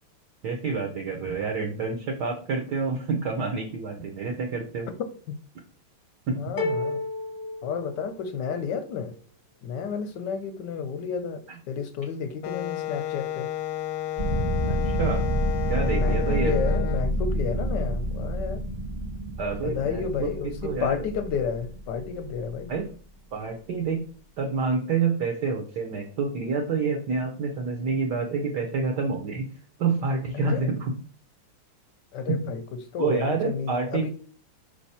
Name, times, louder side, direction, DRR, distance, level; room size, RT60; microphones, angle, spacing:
voice 1, 0.4-4.9 6.3-6.4 14.7-15.3 15.7-16.5 19.4-20.3 20.6-21.0 22.7-22.9 23.3-24.1 24.4-29.5 29.8-30.9 32.3-32.4 33.0-34.1, right 4 dB, 60° right, 2 dB, 1.3 m, -28 dB
voice 2, 6.4-7.0 7.6-9.1 9.6-13.5 15.9-18.6 19.6-22.7 30.3-30.7 32.1-32.6 32.9-34.1, left 6 dB, 70° left, 10 dB, 1.0 m, -31 dB
sound 1, 6.6-8.6, left 2 dB, 30° left, 0.7 m, -32 dB
Wind instrument woodwind instrument, 12.4-17.1, left 12 dB, 90° left, 1.5 m, -32 dB
sound 2, 14.2-22.6, equal, 20° right, 0.6 m, -28 dB
5.4 x 5.0 x 4.2 m, 0.42 s
omnidirectional pair, 2.4 m